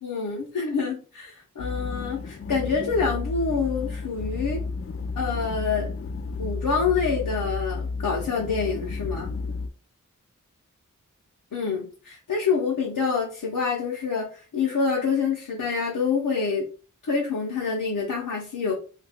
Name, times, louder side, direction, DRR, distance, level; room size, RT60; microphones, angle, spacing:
voice 1, 0.0-4.6 5.2-5.9 6.4-9.3 11.5-16.7 17.0-18.7, left 5 dB, 90° left, -3 dB, 0.8 m, -27 dB
sound 1, 1.6-9.7, left 4 dB, 45° left, 0.4 m, -32 dB
2.8 x 2.4 x 3.4 m, 0.37 s
wide cardioid pair, 60°, 32 cm